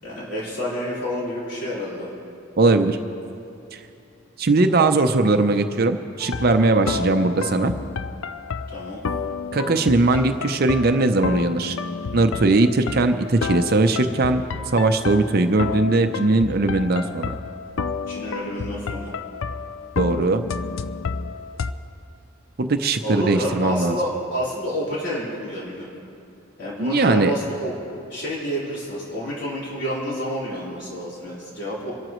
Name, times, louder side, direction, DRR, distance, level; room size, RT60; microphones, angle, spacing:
voice 1, 0.0-2.1 8.7-9.0 18.1-19.1 23.0-25.9 26.6-27.7 28.1-31.9, equal, 60° left, -8 dB, 4.3 m, -29 dB
voice 2, 2.6-3.0 3.7-3.8 4.4-7.7 9.5-11.8 12.1-14.4 14.7-17.3 20.0-20.4 22.6-24.0 26.8-27.3, right 2 dB, 50° right, 7 dB, 0.6 m, -19 dB
sound 1, 6.2-21.7, left 5 dB, 85° left, 0.5 m, -30 dB
26.5 x 12.5 x 3.1 m, 2.7 s
head